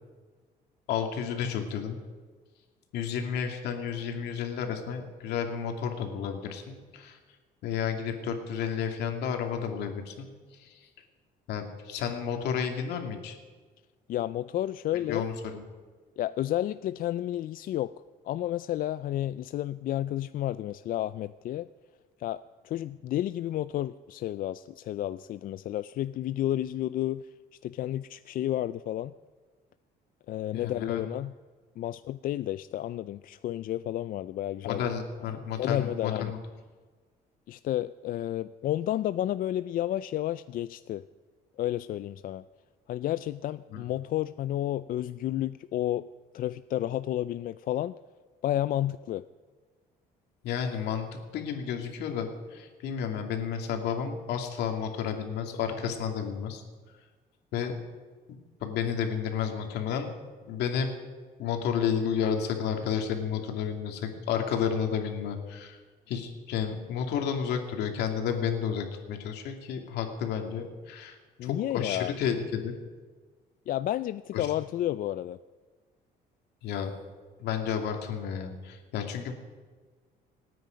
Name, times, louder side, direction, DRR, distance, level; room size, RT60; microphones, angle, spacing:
voice 1, 0.9-2.0 2.9-7.2 7.6-10.3 10.6-10.8 11.5-13.4 15.1-15.6 30.5-31.0 34.6-36.4 43.7-43.9 50.4-51.1 51.3-56.6 57.5-57.7 58.6-60.1 60.5-60.9 61.4-65.8 66.1-71.2 71.4-72.7 74.3-74.5 76.6-76.9 77.4-79.3, left 7 dB, 80° left, 4 dB, 2.5 m, -31 dB
voice 2, 14.1-15.3 16.2-17.9 18.2-21.7 22.2-27.3 27.6-29.1 30.3-31.3 31.8-34.9 35.4-36.3 37.5-41.0 41.6-42.4 42.9-46.1 46.3-47.9 48.4-49.2 71.4-72.2 73.7-75.4, left 13 dB, 55° left, 14 dB, 0.4 m, -31 dB
27.5 x 9.4 x 5.2 m, 1.4 s
cardioid pair, 110°, 17 cm